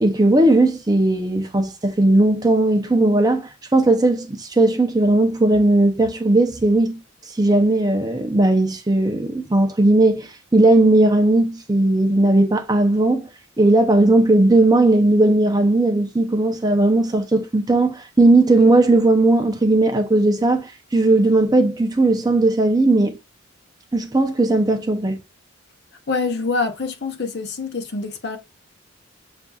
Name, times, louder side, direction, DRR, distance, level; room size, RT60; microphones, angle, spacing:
voice 1, 0.0-7.0 7.4-13.3 13.6-23.2 23.9-25.2, right 2 dB, 20° right, 0.5 m, -17 dB
voice 2, 26.1-28.4, left 4 dB, 50° left, 0.8 m, -25 dB
6.8 x 2.5 x 2.3 m
head